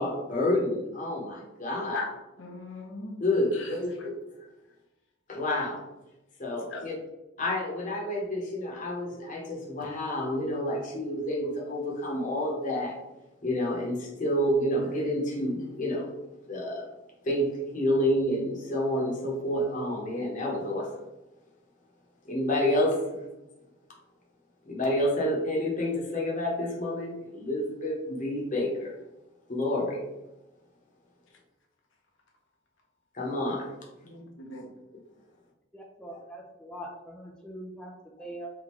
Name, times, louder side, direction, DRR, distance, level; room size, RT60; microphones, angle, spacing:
voice 1, 0.0-2.0 3.2-3.9 5.3-5.8 6.4-6.9 7.4-12.9 13.4-16.0 16.5-16.8 17.3-17.5 17.7-20.8 22.3-22.9 24.7-28.7 29.5-30.0 33.2-33.6, left 1 dB, 40° left, -2 dB, 1.0 m, -29 dB
voice 2, 2.4-3.2 3.5-4.1 6.7-6.8 34.0-34.7, left 3 dB, 70° left, 0 dB, 0.9 m, -39 dB
voice 3, 35.7-38.5, right 1 dB, 5° left, -2 dB, 0.5 m, -42 dB
3.6 x 3.5 x 3.1 m, 0.98 s
head